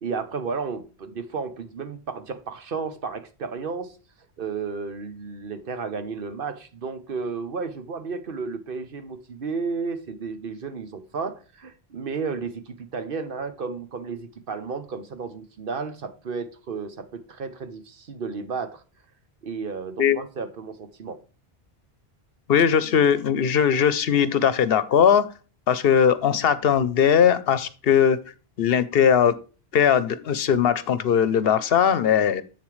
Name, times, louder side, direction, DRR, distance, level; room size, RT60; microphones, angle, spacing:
voice 1, 0.0-4.0 4.4-18.8 19.4-21.2, right 5 dB, 60° right, 1.1 m, -33 dB
voice 2, 22.5-25.2 25.7-28.2 28.6-29.3 29.7-32.4, left 8 dB, 70° left, 0.9 m, -19 dB
7.8 x 7.1 x 3.2 m
omnidirectional pair, 1.1 m